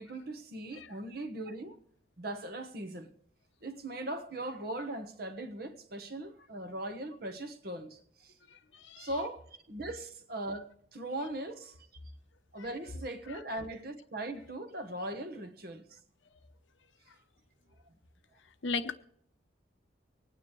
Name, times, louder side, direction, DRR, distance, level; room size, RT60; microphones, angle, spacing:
voice 1, 0.0-1.8 2.2-3.1 3.6-8.3 9.0-11.7 12.5-16.0, right 1 dB, 50° right, 1.2 m, -39 dB
voice 2, 8.5-9.1 12.6-12.7 13.3-13.4 17.1-17.2 18.6-19.0, left 4 dB, 80° left, 0.8 m, -37 dB
24.5 x 9.4 x 3.2 m
head